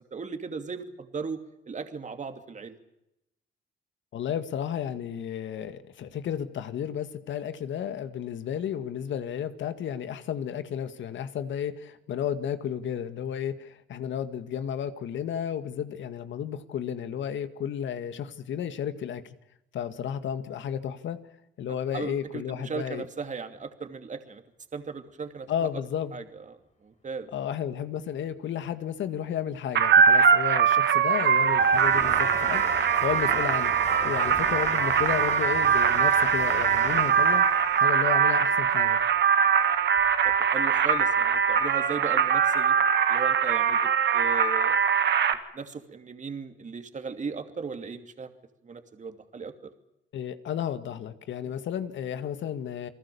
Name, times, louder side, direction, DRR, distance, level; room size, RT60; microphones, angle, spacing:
voice 1, 0.1-2.8 21.7-24.4 24.7-25.7 26.1-27.3 30.2-30.4 40.2-42.8 43.1-44.8 45.5-48.3 48.6-49.5 51.4-51.5, right 5 dB, 40° right, 7 dB, 2.8 m, -37 dB
voice 2, 4.1-19.2 19.7-21.2 21.6-23.1 25.5-26.1 27.3-37.4 37.7-39.0 50.1-52.9, left 9 dB, 70° left, 10 dB, 2.0 m, -33 dB
sound 1, 29.8-45.3, right 7 dB, 60° right, 2.0 m, -22 dB
Train, 30.2-40.4 40.8-41.7 42.0-42.1, left 4 dB, 35° left, 3.6 m, -41 dB
29.0 x 19.5 x 7.1 m, 0.84 s
cardioid pair, 90°, 20 cm